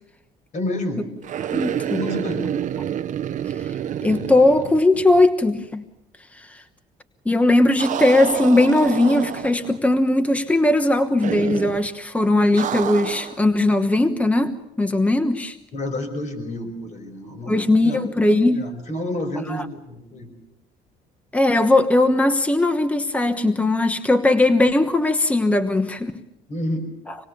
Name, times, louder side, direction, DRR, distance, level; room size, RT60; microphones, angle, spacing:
voice 1, 0.5-1.1 1.9-2.5 15.7-18.0 18.5-20.3 26.5-26.9, left 1 dB, 45° left, 7 dB, 5.1 m, -29 dB
sound 1, 1.2-5.4 5.6-5.7 7.8-9.8 11.2-11.9 12.6-13.4, right 10 dB, 50° right, 0.8 m, -28 dB
voice 2, 1.5-2.0 3.6-3.7 4.0-5.8 6.3-6.6 7.2-15.6 17.5-18.7 19.5-19.6 21.3-26.1 27.1-27.2, left 2 dB, 10° left, 9 dB, 1.2 m, -19 dB
26.0 x 20.5 x 7.0 m, 0.87 s
cardioid pair, 110°, 17 cm